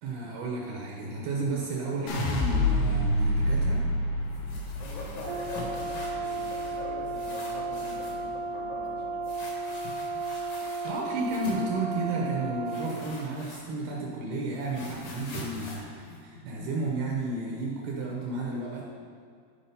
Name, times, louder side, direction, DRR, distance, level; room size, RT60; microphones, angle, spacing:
voice 1, 0.0-3.8 10.2-10.3 10.8-18.9, right 2 dB, 70° right, -3 dB, 2.5 m, -32 dB
sound 1, 2.1-8.3 8.6-9.2, left 1 dB, 90° left, 3.7 m, -29 dB
sound 2, 4.3-6.8 7.1-8.2 9.2-11.7 12.7-14.0 14.2-16.9, left 2 dB, 55° left, 2.2 m, -44 dB
voice 2, 4.8-9.4, left 3 dB, 75° left, -3 dB, 3.7 m, -42 dB
Brass instrument, 5.2-13.0, right 3 dB, 85° right, 2.5 m, -34 dB
12.0 x 4.9 x 5.5 m, 2.2 s
omnidirectional pair, 5.5 m